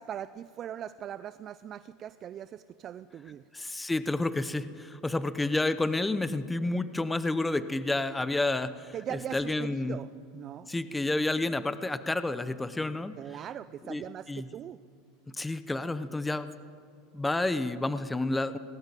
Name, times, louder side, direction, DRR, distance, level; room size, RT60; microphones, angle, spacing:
voice 1, 0.0-3.4 8.9-10.7 13.2-14.8, right 10 dB, 35° right, 15 dB, 0.4 m, -40 dB
voice 2, 3.5-10.0 10.7-13.2 13.9-14.5 15.3-16.5 17.1-18.6, left 2 dB, 10° left, 13 dB, 0.8 m, -30 dB
19.0 x 19.0 x 9.1 m, 2.3 s
supercardioid pair, 135°, 0 cm